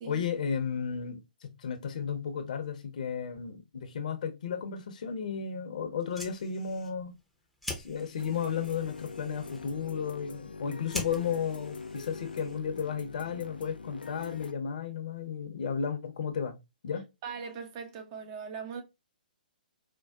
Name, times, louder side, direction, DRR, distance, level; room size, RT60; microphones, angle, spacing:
voice 1, 0.0-7.1 7.8-16.6 16.8-17.0, left 7 dB, 55° left, 0.7 m, -34 dB
Fire, 5.9-12.8, left 1 dB, ahead, 0.7 m, -45 dB
sound 1, 8.2-14.5, left 4 dB, 85° left, 0.4 m, -44 dB
voice 2, 17.2-18.8, right 6 dB, 35° right, 0.7 m, -40 dB
4.5 x 2.3 x 2.3 m
figure-of-eight pair, 125°, 5 cm